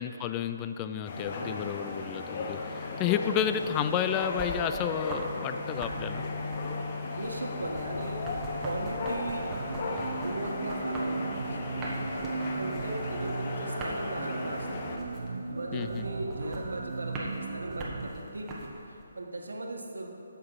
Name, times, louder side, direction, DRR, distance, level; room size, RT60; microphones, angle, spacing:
voice 1, 0.0-2.6 3.0-6.2 15.7-16.1, left 9 dB, 20° left, 9 dB, 0.4 m, -31 dB
sound 1, 1.0-15.0, left 3 dB, 35° left, 0.9 m, -36 dB
voice 2, 1.4-1.7 6.9-8.3 8.6-9.5 10.1-14.9 15.5-18.5 18.9-20.1, right 2 dB, 85° right, 1 dB, 1.4 m, -38 dB
sound 2, 3.2-5.4 5.6-19.0, right 2 dB, 15° right, 1.3 m, -43 dB
sound 3, 9.5-18.1, right 3 dB, 70° right, 0.8 m, -36 dB
9.4 x 6.8 x 5.6 m, 2.7 s
hypercardioid pair, 155°, 0 cm